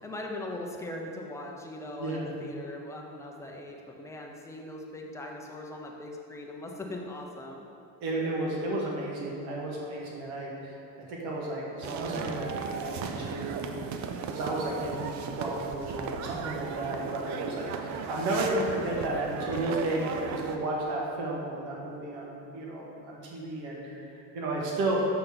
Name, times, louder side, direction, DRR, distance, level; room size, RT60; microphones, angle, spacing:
voice 1, 0.0-7.6 14.2-14.3 16.9-17.2, left 1 dB, 10° left, 0 dB, 0.6 m, -40 dB
voice 2, 8.0-10.8 11.1-13.6 14.3-24.0 24.3-24.9, right 2 dB, 75° right, -3 dB, 1.7 m, -33 dB
sound 1, 11.8-20.6, right 6 dB, 45° right, 0.5 m, -36 dB
6.6 x 3.8 x 5.9 m, 2.7 s
cardioid pair, 145°, 39 cm